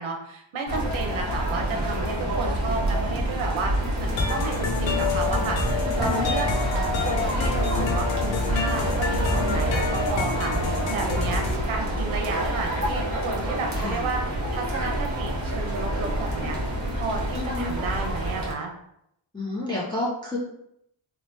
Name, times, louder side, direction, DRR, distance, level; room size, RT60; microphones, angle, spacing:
voice 1, 0.0-16.6 17.0-18.7, right 4 dB, 75° right, 3 dB, 0.7 m, -32 dB
sound 1, 0.7-18.5, right 1 dB, 35° right, 0.8 m, -27 dB
sound 2, 4.2-11.6, left 4 dB, 65° left, 0.5 m, -28 dB
voice 2, 5.8-6.3 13.7-14.0 17.3-17.8 19.3-20.4, left 2 dB, 10° left, -6 dB, 0.5 m, -30 dB
3.1 x 2.1 x 2.7 m, 0.76 s
cardioid pair, 75°, 48 cm